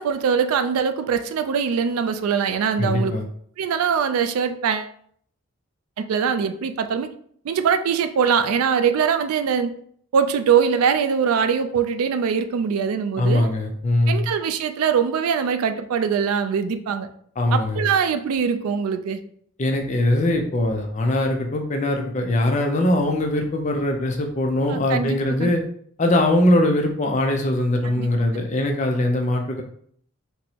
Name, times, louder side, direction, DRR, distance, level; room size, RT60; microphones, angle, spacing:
voice 1, 0.0-3.2 3.6-4.9 6.0-7.1 7.4-9.7 10.1-13.5 14.1-17.1 17.5-19.2 24.7-25.5 28.0-28.1, right 6 dB, 85° right, 9 dB, 0.3 m, -22 dB
voice 2, 2.8-3.2 13.2-14.3 17.4-17.8 19.6-25.6 26.0-29.6, left 1 dB, 30° left, 3 dB, 0.4 m, -21 dB
4.3 x 2.0 x 2.8 m, 0.63 s
head